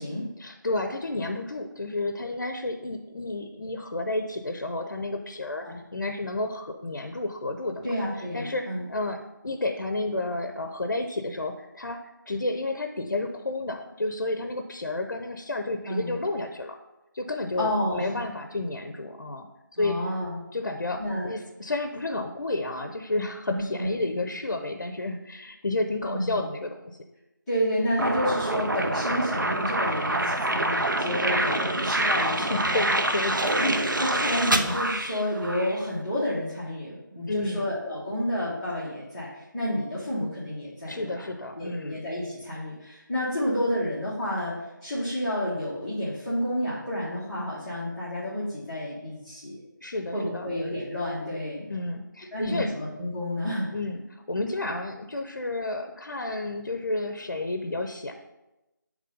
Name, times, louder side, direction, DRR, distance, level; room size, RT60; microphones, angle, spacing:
voice 1, 0.4-7.9 8.3-12.0 12.3-16.8 17.1-19.5 19.8-20.0 20.5-27.0 31.2-31.6 32.2-33.5 37.3-37.7 40.9-42.0 49.8-50.5 51.7-52.7 53.7-58.1, left 2 dB, 60° left, 5 dB, 0.6 m, -31 dB
voice 2, 7.8-8.9 15.9-16.2 17.6-18.1 19.8-20.4 21.0-21.3 23.5-24.2 26.0-26.4 27.5-32.9 33.5-41.2 41.6-44.5 44.8-49.6 50.1-51.7 52.3-53.7, equal, ahead, -16 dB, 0.5 m, -30 dB
sound 1, 28.0-35.8, right 1 dB, 70° right, 0.7 m, -26 dB
6.4 x 3.2 x 5.2 m, 0.98 s
figure-of-eight pair, 165°, 11 cm